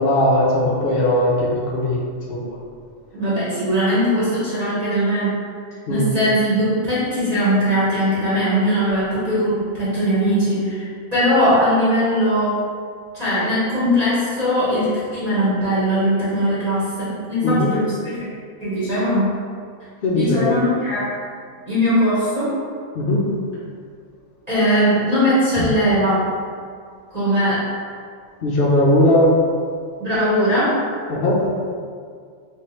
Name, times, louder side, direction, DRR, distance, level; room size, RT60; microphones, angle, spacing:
voice 1, 0.0-2.0 2.3-2.6 3.4-3.6 5.9-6.1 17.4-17.7 20.0-20.6 23.0-23.3 28.4-29.3 31.1-31.4, left 1 dB, 65° left, -4 dB, 0.6 m, -18 dB
voice 2, 3.1-5.3 5.9-10.8 11.1-12.6 13.1-18.3 18.6-19.3 20.1-21.0 21.7-22.5 24.5-26.2 27.1-27.6 30.0-30.7, equal, 30° right, -12 dB, 1.1 m, -20 dB
3.3 x 3.1 x 2.9 m, 2.1 s
omnidirectional pair, 1.4 m